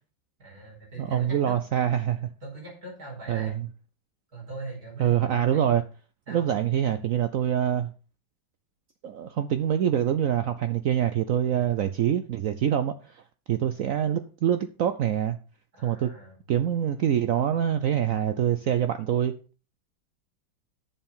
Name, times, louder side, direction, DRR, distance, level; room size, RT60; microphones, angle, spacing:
voice 1, 0.4-1.6 2.4-3.6 4.3-5.8 6.3-6.5 11.5-11.8 15.7-16.3, right 2 dB, 50° right, 5.2 m, -41 dB
voice 2, 1.0-2.3 3.3-3.7 5.0-5.8 6.3-7.9 9.0-13.2 13.5-15.4 15.8-16.1 16.5-19.3, right 10 dB, 80° right, 0.7 m, -25 dB
8.6 x 7.2 x 5.4 m
omnidirectional pair, 2.1 m